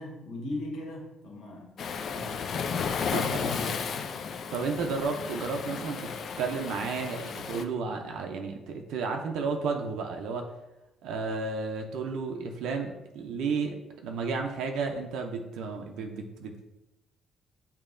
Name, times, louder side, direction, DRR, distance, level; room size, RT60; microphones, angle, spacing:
voice 1, 0.0-1.7 2.1-2.4 3.2-3.7, left 1 dB, 70° left, -2 dB, 1.2 m, -38 dB
Waves surf, 1.8-7.6, left 6 dB, 55° left, 0.3 m, -33 dB
voice 2, 3.1-3.4 4.5-6.1 6.4-10.5 11.0-13.8 14.0-16.6, right 4 dB, 85° right, 3 dB, 0.5 m, -32 dB
6.6 x 2.8 x 2.5 m, 0.97 s
cardioid pair, 120°, 0 cm